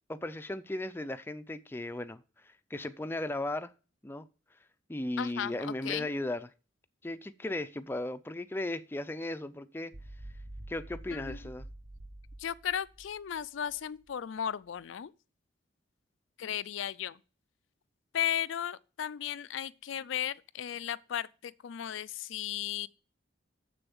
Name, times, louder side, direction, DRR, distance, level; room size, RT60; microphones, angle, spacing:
voice 1, 0.1-3.7 4.0-4.3 4.9-6.5 7.0-9.9 10.7-11.7, left 1 dB, 10° left, 0.4 m, -36 dB
voice 2, 5.2-6.1 11.1-11.4 12.4-15.1 16.4-17.2 18.1-22.9, left 10 dB, 80° left, 0.4 m, -35 dB
sound 1, 9.9-14.1, right 1 dB, 40° right, 0.7 m, -47 dB
7.0 x 6.8 x 7.1 m
head